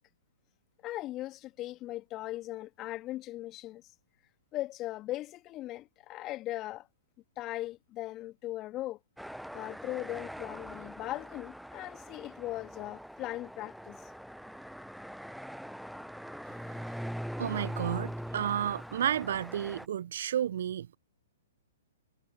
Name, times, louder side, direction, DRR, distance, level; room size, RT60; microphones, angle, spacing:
voice 1, 0.8-3.8 4.5-6.9 7.4-9.0 9.5-14.0, left 16 dB, 30° left, 2.1 m, -39 dB
sound 1, 9.2-19.9, equal, ahead, 0.7 m, -42 dB
voice 2, 17.4-21.0, right 10 dB, 60° right, 0.5 m, -32 dB
figure-of-eight pair, 115°, 0 cm